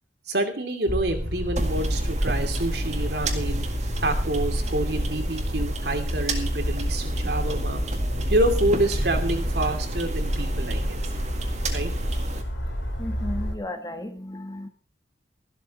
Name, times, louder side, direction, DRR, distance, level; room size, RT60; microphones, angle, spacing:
voice 1, 0.3-3.7 4.0-7.8 8.3-11.0 11.7-11.9, right 1 dB, 65° right, 5 dB, 2.5 m, -27 dB
sound 1, 0.9-13.5, equal, 85° left, 3.5 m, -29 dB
sound 2, 1.5-12.4, right 1 dB, 40° right, 1.9 m, -30 dB
voice 2, 13.0-14.7, left 1 dB, 20° left, 7 dB, 1.2 m, -34 dB
13.5 x 12.0 x 4.2 m, 0.39 s
head